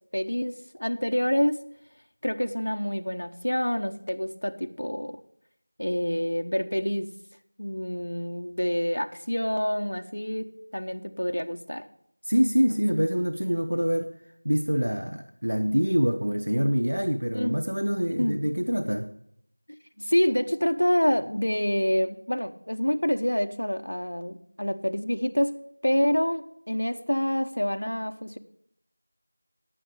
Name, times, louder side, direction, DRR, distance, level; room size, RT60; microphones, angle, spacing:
voice 1, 0.1-1.6 2.2-5.2 5.8-7.1 7.6-11.9 17.3-17.6 18.2-18.4 20.0-25.5 25.8-28.4, equal, 50° left, 5 dB, 0.9 m, -27 dB
voice 2, 12.3-14.1 14.4-19.1, equal, 85° right, 7 dB, 1.0 m, -25 dB
11.0 x 9.0 x 4.8 m, 0.69 s
figure-of-eight pair, 180°, 0 cm